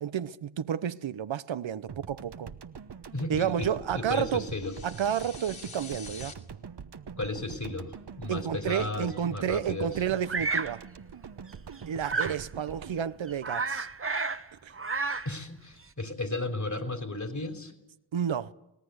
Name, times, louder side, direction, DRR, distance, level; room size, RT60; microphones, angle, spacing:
voice 1, 0.0-2.5 3.3-4.5 4.8-6.4 8.3-10.8 11.9-13.9 14.6-14.7 18.1-18.5, right 9 dB, 75° right, 0.9 m, -31 dB
sound 1, 1.9-14.3, right 6 dB, 60° right, 1.2 m, -44 dB
voice 2, 3.1-4.8 7.2-10.0 15.3-17.7, left 2 dB, 40° left, 3.4 m, -34 dB
sound 2, 4.2-6.3, left 4 dB, 75° left, 3.1 m, -46 dB
Bird vocalization bird call bird song, 10.3-10.8 12.0-12.4 12.9-13.0 13.3-14.4 14.7-15.4, right 4 dB, 30° right, 1.0 m, -31 dB
25.0 x 18.0 x 8.0 m
cardioid pair, 50°, 46 cm